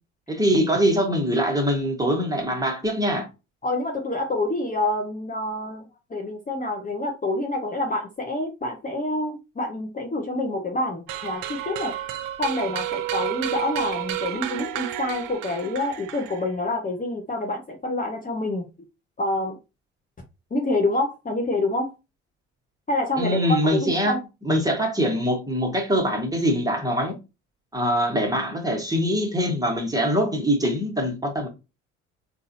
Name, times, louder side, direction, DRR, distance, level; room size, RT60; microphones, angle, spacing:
voice 1, 0.3-3.3 23.2-24.1 24.4-27.1 27.7-31.5, equal, 10° right, 1.5 m, -23 dB
voice 2, 3.6-5.8 6.1-11.9 12.4-18.7 19.2-19.6 20.5-21.9 22.9-24.2, left 2 dB, 25° left, 0.9 m, -27 dB
sound 1, 11.1-16.7, right 13 dB, 65° right, 0.6 m, -31 dB
3.9 x 2.6 x 2.7 m
hypercardioid pair, 60°, 35 cm